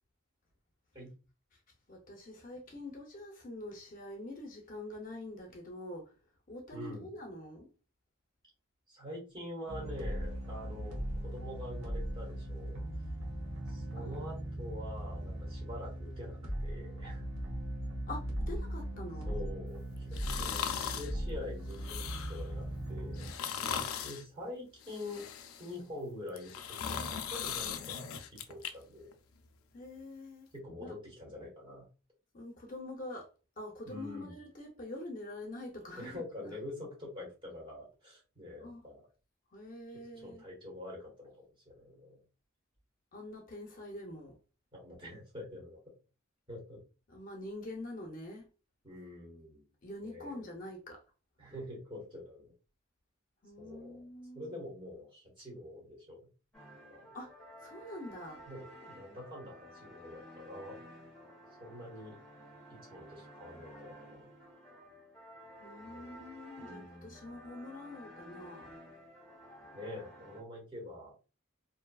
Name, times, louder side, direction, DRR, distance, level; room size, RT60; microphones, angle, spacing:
voice 1, 1.9-6.2 6.5-7.7 13.9-14.3 18.1-19.5 29.7-30.5 30.8-30.9 32.3-36.6 38.6-38.8 39.5-40.4 43.1-44.4 47.1-48.5 49.8-51.0 53.4-54.5 57.1-58.5 65.6-68.8, left 1 dB, 40° left, 0.6 m, -45 dB
voice 2, 6.7-7.1 8.9-12.8 13.7-17.2 19.2-23.3 24.0-25.3 25.6-29.1 30.5-31.9 33.9-34.3 36.0-39.0 40.2-42.2 44.7-45.8 46.5-46.8 48.8-49.7 50.0-50.4 51.4-52.5 53.6-54.0 54.3-56.3 56.8-57.1 58.5-60.8 61.6-62.2 62.7-64.2 65.8-66.2 66.6-67.4 69.7-71.1, left 1 dB, 25° right, 1.2 m, -46 dB
sound 1, 9.7-23.3, right 1 dB, 75° right, 1.0 m, -39 dB
sound 2, 20.1-21.1 21.7-22.5 23.2-24.2 24.8-25.8 26.3-28.7 29.1-29.2, left 8 dB, 90° left, 0.4 m, -38 dB
sound 3, 56.5-70.4, equal, ahead, 1.0 m, -53 dB
2.6 x 2.4 x 2.3 m
head